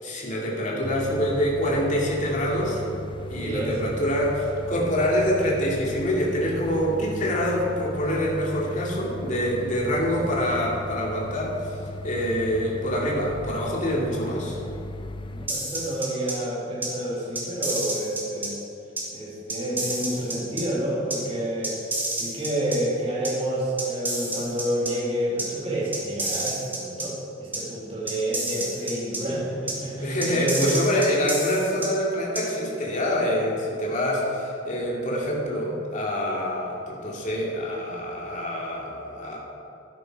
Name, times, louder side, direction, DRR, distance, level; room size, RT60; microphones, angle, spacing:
voice 1, 0.0-2.8 3.3-11.6 12.0-14.6 30.0-39.4, equal, 45° left, -3 dB, 2.4 m, -25 dB
sound 1, 0.8-15.5, left 1 dB, 25° left, 0.4 m, -37 dB
voice 2, 3.2-3.8 15.3-18.6 19.1-21.7 22.1-30.8, right 1 dB, 30° right, -5 dB, 2.6 m, -29 dB
sound 2, 15.5-16.3 16.8-16.9 17.4-18.5 19.0-19.1 19.5-20.6 21.1-21.2 21.6-22.8 23.2-23.3 23.8-24.9 25.4-25.5 25.9-27.1 27.5-27.6 28.1-29.2 29.7-29.8 30.2-31.9 32.4-32.5, right 2 dB, 10° right, 2.1 m, -29 dB
12.0 x 9.9 x 4.6 m, 2.8 s
head